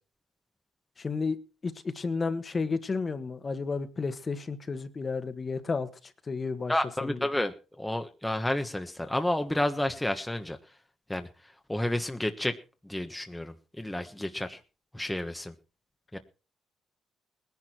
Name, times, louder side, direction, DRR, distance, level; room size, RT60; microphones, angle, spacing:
voice 1, 1.0-1.4 1.6-5.9 6.3-6.7 7.0-7.3, left 4 dB, 35° left, 1.7 m, -32 dB
voice 2, 6.7-10.6 11.1-11.3 11.7-12.5 12.8-14.6 14.9-15.5 16.1-16.2, left 1 dB, 5° left, 1.3 m, -30 dB
19.5 x 11.0 x 4.5 m
cardioid pair, 90°, 0 cm